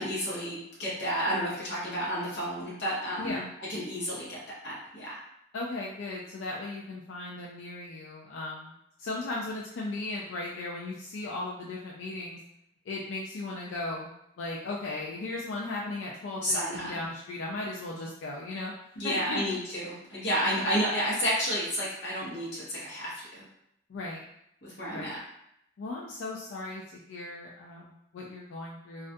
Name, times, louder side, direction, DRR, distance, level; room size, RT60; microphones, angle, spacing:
voice 1, 0.0-5.2 16.4-16.9 19.0-23.4 24.6-25.2, equal, 60° left, -8 dB, 0.8 m, -31 dB
voice 2, 5.5-8.7 9.0-12.4 12.9-14.1 14.4-18.7 19.0-19.6 20.6-20.7 23.9-24.2 24.9-25.2 25.8-26.8 27.1-29.1, left 2 dB, 85° left, -3 dB, 0.3 m, -37 dB
2.3 x 2.1 x 2.5 m, 0.78 s
head